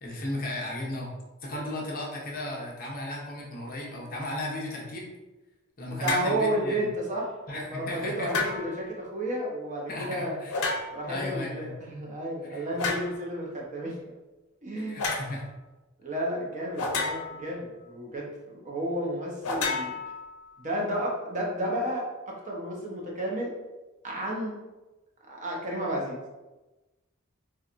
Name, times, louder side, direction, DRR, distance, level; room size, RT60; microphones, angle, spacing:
voice 1, 0.0-1.1 1.4-5.1 5.8-6.9 7.5-8.6 9.9-10.6 11.1-11.7 12.5-12.7 14.8-15.4, left 1 dB, 45° left, -2 dB, 0.7 m, -35 dB
voice 2, 5.8-10.4 10.9-14.2 14.6-15.1 16.0-20.0 20.6-23.5 24.0-24.6 25.3-26.2, right 1 dB, 35° right, -2 dB, 0.7 m, -32 dB
sound 1, 6.0-6.4 8.3-8.9 10.5-11.1 12.8-13.1 15.0-15.3 16.8-17.5 19.4-20.6, left 3 dB, 80° left, 0.6 m, -31 dB
4.2 x 2.3 x 2.5 m, 1.1 s
head